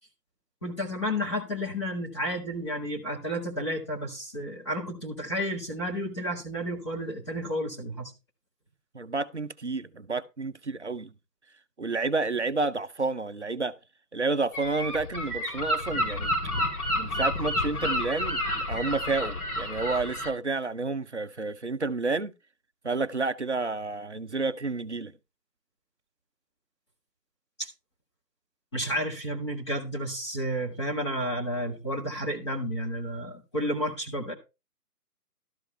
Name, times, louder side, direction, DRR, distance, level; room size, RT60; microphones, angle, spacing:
voice 1, 0.6-8.1 27.6-27.7 28.7-34.3, equal, 15° left, 1.5 m, -31 dB
voice 2, 8.9-11.1 11.8-13.7 14.1-16.3 16.9-22.3 22.8-25.1, right 3 dB, 45° right, 0.6 m, -30 dB
Gull seagull, 14.5-20.3, left 1 dB, 65° left, 2.7 m, -30 dB
13.0 x 5.2 x 5.3 m
figure-of-eight pair, 170°, 48 cm